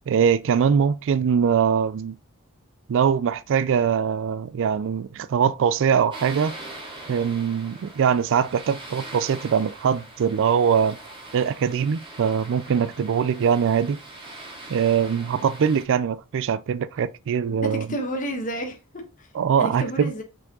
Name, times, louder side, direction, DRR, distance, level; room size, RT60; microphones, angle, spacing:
voice 1, 0.1-2.1 2.9-6.5 7.1-11.0 11.3-14.0 14.7-17.9 19.3-20.1, right 7 dB, 60° right, 0.4 m, -22 dB
sound 1, 6.1-15.8, right 2 dB, 25° right, 2.2 m, -42 dB
voice 2, 17.6-19.3 19.6-20.2, right 1 dB, 35° left, 1.3 m, -31 dB
6.1 x 4.7 x 3.8 m
head